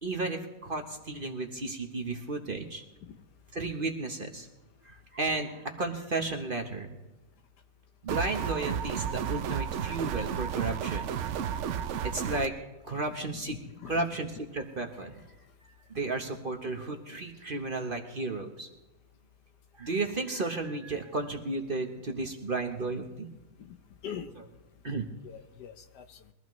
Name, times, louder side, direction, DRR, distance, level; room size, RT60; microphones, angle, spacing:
voice 1, 0.0-2.8 3.5-4.5 4.8-6.9 8.0-11.2 12.1-12.5 12.8-13.5 13.9-14.3 14.5-15.2 15.9-18.7 19.8-23.3 24.8-25.1, right 3 dB, 35° right, 3 dB, 1.1 m, -33 dB
sound 1, 8.1-12.5, right 8 dB, 65° right, 0.7 m, -32 dB
voice 2, 13.1-14.2 23.6-23.8 24.0-24.3 25.2-26.2, left 8 dB, 75° left, 8 dB, 1.5 m, -44 dB
22.5 x 14.5 x 3.1 m, 1.0 s
omnidirectional pair, 1.8 m